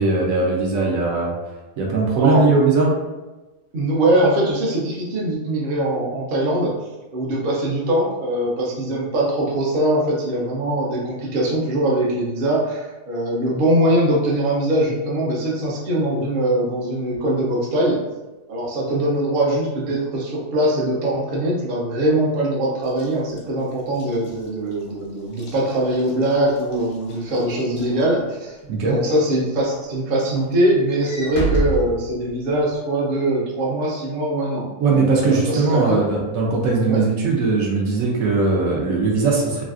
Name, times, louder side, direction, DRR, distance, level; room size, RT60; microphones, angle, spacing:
voice 1, 0.0-1.3 1.8-2.9 28.7-29.0 34.8-39.6, right 3 dB, 70° right, -2 dB, 1.1 m, -19 dB
voice 2, 3.7-6.7 7.1-18.0 18.5-34.7 35.2-36.0 36.8-37.0, right 1 dB, 50° right, -4 dB, 0.7 m, -22 dB
Walk footsteps / Slam, 22.9-28.6 29.1-29.4 29.7-32.7, right 1 dB, 60° left, 0.7 m, -31 dB
3.1 x 2.5 x 2.4 m, 1.1 s
omnidirectional pair, 1.5 m